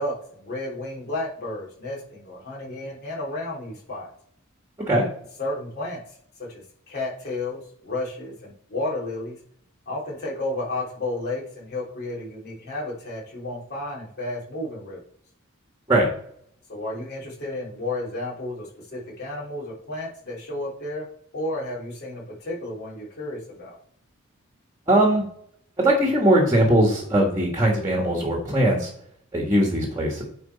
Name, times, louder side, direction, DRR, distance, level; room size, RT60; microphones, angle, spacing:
voice 1, 0.0-4.1 5.4-6.2 6.5-9.4 9.8-15.0 16.7-21.1 21.3-23.8, left 2 dB, 45° left, -5 dB, 3.4 m, -32 dB
voice 2, 24.9-25.2 25.8-28.9 29.3-30.2, right 1 dB, 15° right, 0 dB, 1.6 m, -20 dB
9.7 x 4.5 x 4.2 m, 0.65 s
head